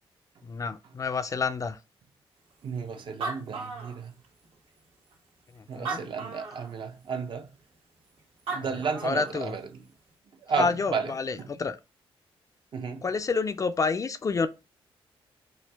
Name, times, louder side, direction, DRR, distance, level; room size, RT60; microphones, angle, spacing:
voice 1, 0.4-1.8 5.6-6.0 8.6-8.7 9.0-9.5 10.6-11.8 13.0-14.5, left 4 dB, 35° left, 0.3 m, -29 dB
voice 2, 2.6-4.1 5.7-7.5 8.5-9.8 10.4-11.5 12.7-13.0, right 6 dB, 55° right, 0.6 m, -33 dB
Animal, 2.8-2.9 3.0-4.5 5.1-5.2 5.7-6.7 8.2-8.3 8.5-9.4, right 4 dB, 70° right, 1.3 m, -36 dB
4.3 x 2.3 x 3.4 m
cardioid pair, 90°, 10 cm